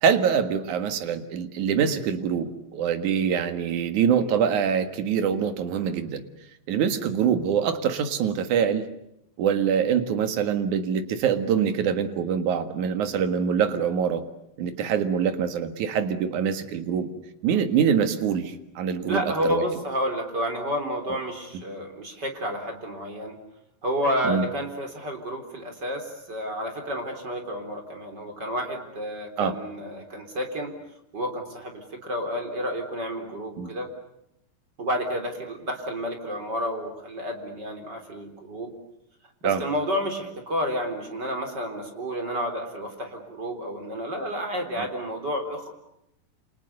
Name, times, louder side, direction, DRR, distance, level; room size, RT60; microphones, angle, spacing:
voice 1, 0.0-6.2 6.7-8.9 9.4-14.2 14.6-17.1 17.4-19.6 24.2-24.5 29.4-29.5 33.6-33.7 39.4-39.6 44.8-44.9, right 7 dB, 65° right, 9 dB, 3.1 m, -24 dB
voice 2, 19.1-23.4 23.8-30.8 31.1-33.9 34.8-38.7 39.4-45.7, equal, 30° right, 4 dB, 4.2 m, -30 dB
28.5 x 28.0 x 6.8 m, 0.80 s
omnidirectional pair, 4.0 m